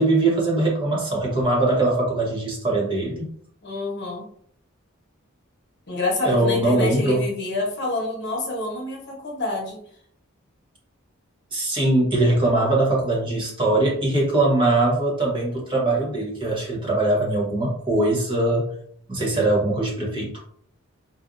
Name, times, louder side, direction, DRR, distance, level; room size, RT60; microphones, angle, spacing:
voice 1, 0.0-3.3 6.2-7.2 11.5-18.7 19.1-20.4, right 2 dB, 25° right, -3 dB, 1.1 m, -21 dB
voice 2, 3.6-4.3 5.9-9.8, left 2 dB, 55° left, -2 dB, 1.0 m, -27 dB
4.3 x 2.5 x 2.5 m, 0.62 s
head